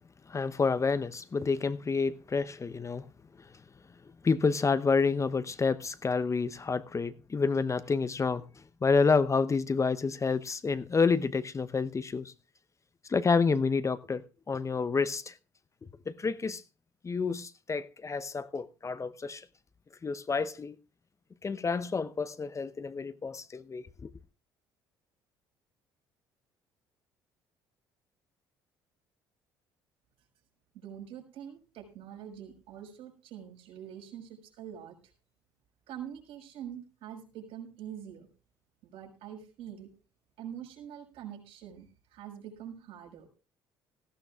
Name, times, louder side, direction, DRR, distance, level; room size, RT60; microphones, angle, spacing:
voice 1, 0.3-3.0 4.2-8.4 8.8-12.3 13.1-15.3 16.1-16.6 17.0-19.4 20.0-20.8 21.4-24.1, left 4 dB, 30° left, 0.8 m, -29 dB
voice 2, 30.7-35.0 35.9-38.3 38.8-39.9 40.4-43.3, right 9 dB, 70° right, 5.6 m, -45 dB
18.0 x 15.5 x 2.4 m
hypercardioid pair, 55°, 11 cm